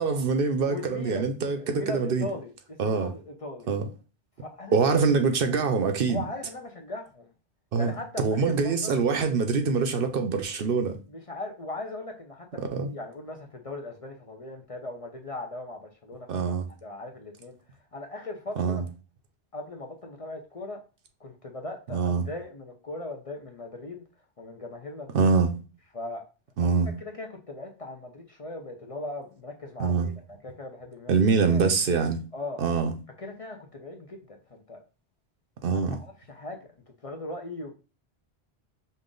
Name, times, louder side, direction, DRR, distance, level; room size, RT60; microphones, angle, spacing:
voice 1, 0.0-2.3 2.8-3.1 3.7-3.8 4.7-6.2 7.7-11.0 12.7-12.9 16.3-16.7 18.6-18.8 21.9-22.3 25.1-25.5 26.6-26.9 29.8-30.1 31.1-32.2 32.6-32.9 35.6-36.0, right 5 dB, 60° right, 0.8 m, -24 dB
voice 2, 0.6-3.7 4.4-5.1 6.1-7.3 7.8-9.0 11.1-17.5 17.9-18.8 19.5-20.8 21.2-24.0 24.4-25.3 25.9-26.2 27.1-30.1 30.4-31.2 31.5-31.6 32.3-32.6 33.2-34.8 35.7-36.6 37.0-37.7, left 2 dB, 40° left, 0.6 m, -39 dB
5.3 x 2.4 x 3.8 m
omnidirectional pair, 1.1 m